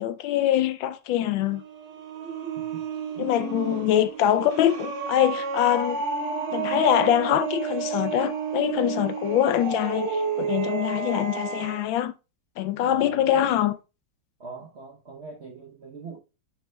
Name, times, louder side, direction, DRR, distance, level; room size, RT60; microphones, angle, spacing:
voice 1, 0.0-1.6 3.2-6.0 6.5-12.1 12.6-13.7, left 11 dB, 75° left, 1.3 m, -24 dB
sound 1, 1.3-11.8, right 5 dB, 85° right, 2.3 m, -31 dB
voice 2, 12.8-13.5 14.4-16.2, right 4 dB, 55° right, 0.7 m, -42 dB
9.8 x 6.3 x 2.2 m
omnidirectional pair, 2.3 m